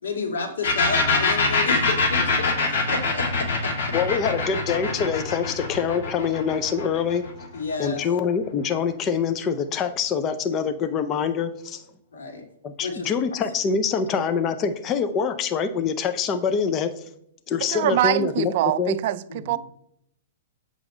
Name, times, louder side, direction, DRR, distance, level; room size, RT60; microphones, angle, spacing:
voice 1, 0.0-3.5 7.5-8.0 12.1-12.4 12.8-13.1 19.3-19.5, left 4 dB, 90° left, 2.3 m, -31 dB
sound 1, 0.6-8.1, left 4 dB, 55° left, 2.7 m, -24 dB
voice 2, 3.9-7.3 7.8-11.8 12.6-17.0 17.5-18.5 18.8-19.0, left 6 dB, 25° left, 0.6 m, -25 dB
voice 3, 17.7-19.6, right 13 dB, 50° right, 0.5 m, -24 dB
8.0 x 6.2 x 3.9 m
hypercardioid pair, 145°, 0 cm